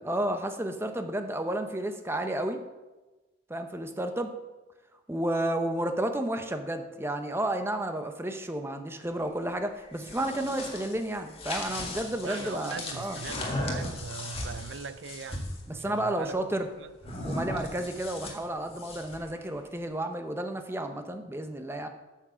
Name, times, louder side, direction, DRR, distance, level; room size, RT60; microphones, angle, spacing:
voice 1, 0.0-2.6 3.5-4.3 5.1-13.2 15.7-16.7 17.2-21.9, right 1 dB, 15° right, 0.8 m, -31 dB
sound 1, 9.8-15.6 17.0-19.3, left 1 dB, 30° left, 1.8 m, -37 dB
voice 2, 12.2-16.4 16.8-17.3, right 5 dB, 70° right, 0.5 m, -41 dB
8.7 x 7.5 x 6.9 m
head